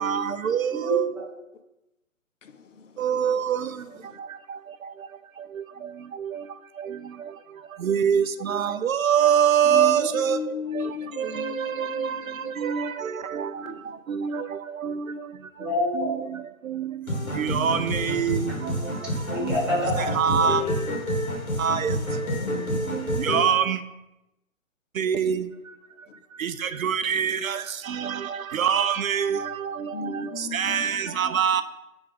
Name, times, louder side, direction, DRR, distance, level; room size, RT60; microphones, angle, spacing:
voice 1, 0.0-1.0 3.0-3.4 7.9-8.2 8.8-10.4 11.4-11.5 11.8-11.9 17.6-17.8 18.2-18.4 20.2-20.6 21.6-21.8 23.3-23.8 25.0-25.4 26.8-27.4 28.6-29.3 30.5-30.9 31.2-31.6, right 8 dB, 75° right, 0.5 m, -22 dB
voice 2, 0.7-1.2 15.6-16.1 19.3-20.7, left 1 dB, ahead, 2.1 m, -28 dB
voice 3, 9.7-12.5 13.6-13.7 22.3-23.1 29.9-31.3, left 6 dB, 65° left, 0.6 m, -35 dB
sound 1, 17.1-23.5, equal, 90° left, 1.9 m, -29 dB
10.5 x 3.5 x 3.6 m
figure-of-eight pair, 130°, 41 cm